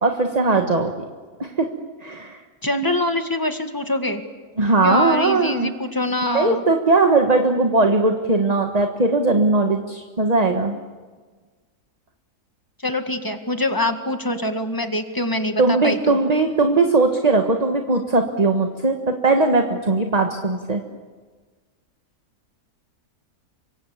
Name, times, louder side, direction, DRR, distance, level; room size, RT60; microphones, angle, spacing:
voice 1, 0.0-0.9 1.4-1.7 2.0-2.4 4.6-5.7 6.3-10.8 15.6-20.8, right 3 dB, 25° right, 4 dB, 1.5 m, -19 dB
voice 2, 2.6-4.2 4.8-6.7 12.8-16.2, left 1 dB, 15° left, 6 dB, 1.9 m, -24 dB
30.0 x 25.5 x 7.3 m, 1.4 s
omnidirectional pair, 1.7 m